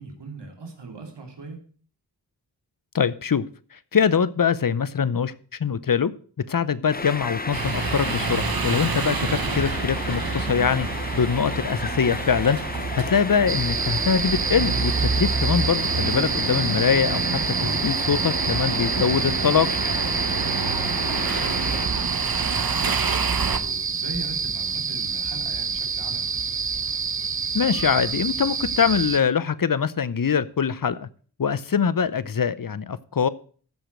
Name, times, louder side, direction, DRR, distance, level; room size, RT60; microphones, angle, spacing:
voice 1, 0.0-1.6 9.4-9.5 13.4-13.5 20.9-26.3, right 3 dB, 80° right, 2 dB, 2.7 m, -40 dB
voice 2, 2.9-3.4 3.9-5.3 5.6-6.1 6.5-10.9 11.1-12.6 12.9-17.2 17.6-19.7 27.5-31.1 31.4-33.3, left 6 dB, 55° left, 17 dB, 0.7 m, -23 dB
sound 1, 6.9-21.9, left 3 dB, 20° left, 0.8 m, -33 dB
sound 2, 7.5-23.6, right 5 dB, 55° right, 1.1 m, -28 dB
sound 3, 13.5-29.2, right 5 dB, 30° right, 0.5 m, -27 dB
13.5 x 5.1 x 6.4 m, 0.43 s
cardioid pair, 40°, 42 cm